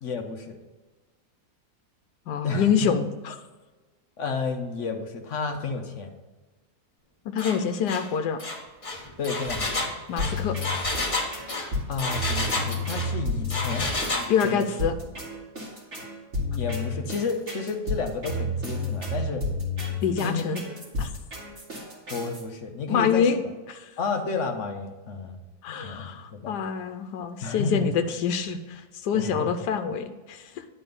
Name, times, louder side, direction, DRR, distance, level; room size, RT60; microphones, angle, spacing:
voice 1, 0.0-0.6 2.4-2.9 4.2-6.1 9.2-9.9 11.9-14.7 16.5-19.4 20.2-20.5 22.1-23.3 24.0-25.4 25.7-26.6 27.4-27.9 29.1-29.5, left 4 dB, 55° left, 5 dB, 1.0 m, -31 dB
voice 2, 2.3-3.4 7.2-8.4 10.1-10.6 14.3-14.9 20.0-20.6 21.0-21.1 22.9-23.4 23.7-23.9 25.6-30.6, left 7 dB, 90° left, 7 dB, 1.2 m, -26 dB
Engine, 7.4-7.6 7.9-8.1 8.4-13.1 13.5-14.3, left 2 dB, 25° left, 0.9 m, -30 dB
sound 1, 10.2-22.4, left 2 dB, 45° right, 2.3 m, -31 dB
10.0 x 4.2 x 5.3 m, 1.3 s
omnidirectional pair, 1.7 m